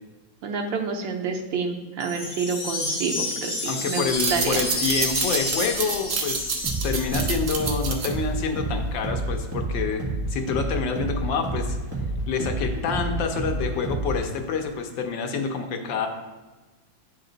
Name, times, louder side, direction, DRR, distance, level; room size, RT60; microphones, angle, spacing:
voice 1, 0.4-4.6, right 5 dB, 85° right, 3 dB, 1.5 m, -28 dB
Wind chime, 2.0-7.4, left 2 dB, 45° left, 1.1 m, -30 dB
voice 2, 3.6-6.6 6.8-10.0 10.3-11.8 12.3-16.1, left 5 dB, 80° left, 4 dB, 1.5 m, -27 dB
sound 1, 4.2-9.2, right 4 dB, 55° right, 0.9 m, -29 dB
sound 2, 6.6-14.3, right 2 dB, 5° right, 1.4 m, -29 dB
10.0 x 3.9 x 3.9 m, 1.2 s
omnidirectional pair, 2.0 m